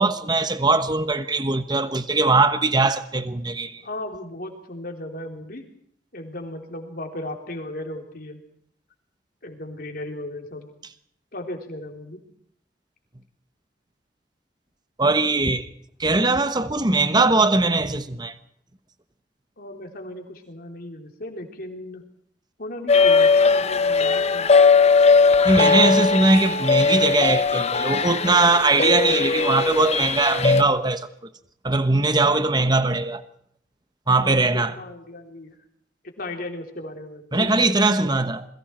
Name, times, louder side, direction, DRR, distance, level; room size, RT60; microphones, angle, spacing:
voice 1, 0.0-3.8 15.0-15.7 16.0-18.3 25.4-31.0 31.6-33.2 34.1-34.7 37.3-38.4, right 3 dB, 25° right, 1.2 m, -20 dB
voice 2, 3.8-5.7 6.1-8.4 9.4-10.7 11.3-12.2 19.6-22.1 22.6-24.5 25.9-26.1 34.2-35.6 36.2-37.7, left 1 dB, 55° left, 3.4 m, -36 dB
sound 1, 22.9-30.6, left 4 dB, 35° left, 0.8 m, -19 dB
28.0 x 22.0 x 4.5 m
head